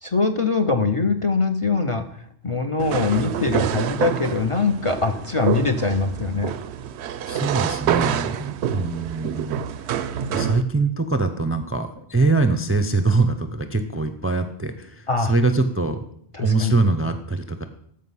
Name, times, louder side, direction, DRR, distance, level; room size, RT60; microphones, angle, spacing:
voice 1, 0.0-2.0 2.4-6.5 15.1-15.3 16.3-16.7, left 4 dB, 40° left, 6 dB, 0.5 m, -22 dB
sound 1, 2.8-10.6, right 9 dB, 85° right, 0.9 m, -27 dB
voice 2, 7.3-9.6 10.3-16.0 16.4-17.6, right 3 dB, 20° right, 8 dB, 0.4 m, -23 dB
14.0 x 5.1 x 5.5 m, 0.69 s
omnidirectional pair, 1.1 m